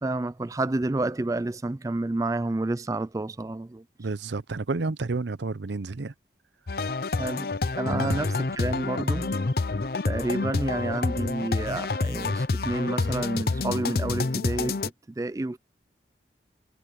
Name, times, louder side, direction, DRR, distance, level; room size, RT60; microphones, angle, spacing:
voice 1, 0.0-3.8 7.2-7.5 7.8-9.4 10.0-15.6, right 2 dB, 20° right, 0.3 m, -30 dB
voice 2, 4.0-6.1 7.9-8.2, right 3 dB, 80° right, 0.7 m, -30 dB
sound 1, 6.7-14.9, left 3 dB, 55° left, 0.7 m, -28 dB
head